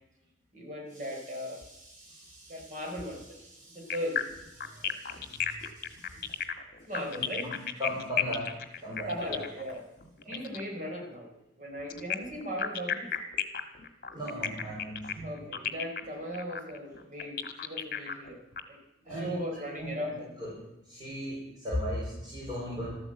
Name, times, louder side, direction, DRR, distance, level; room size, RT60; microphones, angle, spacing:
voice 1, 0.5-6.4 6.9-7.5 9.1-9.9 10.3-13.1 15.2-18.4 18.7-20.3, equal, 45° right, 0 dB, 4.3 m, -39 dB
sound 1, 3.9-10.7 11.9-18.6, left 8 dB, 50° left, 1.5 m, -34 dB
voice 2, 4.6-5.6 7.1-8.5 8.8-9.4 10.3-10.4 14.1-15.3 19.0-19.4 19.8-22.9, equal, 25° right, -7 dB, 4.8 m, -37 dB
13.0 x 13.0 x 7.7 m, 0.91 s
head